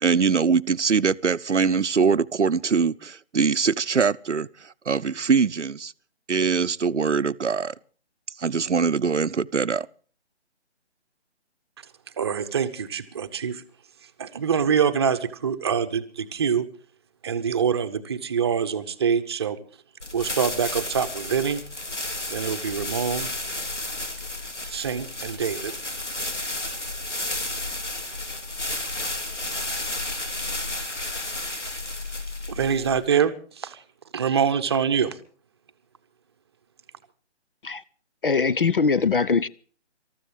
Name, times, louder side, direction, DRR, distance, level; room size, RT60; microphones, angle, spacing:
voice 1, 0.0-5.9 6.3-7.7 8.4-9.9, right 5 dB, 80° right, 0.8 m, -23 dB
voice 2, 12.2-13.6 14.2-16.6 17.2-19.6 20.1-21.6 22.3-23.3 24.7-25.7 32.5-33.8 34.1-35.2, right 7 dB, 20° right, 0.9 m, -25 dB
sound 1, 20.0-33.1, left 2 dB, 85° left, 3.3 m, -32 dB
voice 3, 38.2-39.5, left 5 dB, 50° left, 0.7 m, -21 dB
26.0 x 14.0 x 3.3 m
figure-of-eight pair, 150°, 35 cm